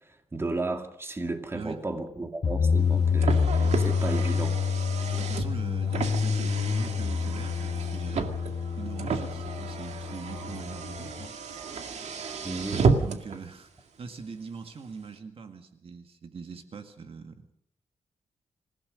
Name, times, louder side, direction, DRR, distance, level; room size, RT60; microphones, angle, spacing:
voice 1, 0.0-4.6 12.4-12.9, right 2 dB, 20° right, 6 dB, 2.2 m, -34 dB
sound 1, 2.4-11.3, left 6 dB, 45° left, 1.2 m, -27 dB
Car, 2.8-13.4, right 5 dB, 80° right, 2.2 m, -32 dB
voice 2, 5.2-8.4 8.8-11.4 13.0-17.5, right 5 dB, 55° right, 7 dB, 2.0 m, -42 dB
26.5 x 16.5 x 6.5 m, 0.69 s
wide cardioid pair, 135°, 11 cm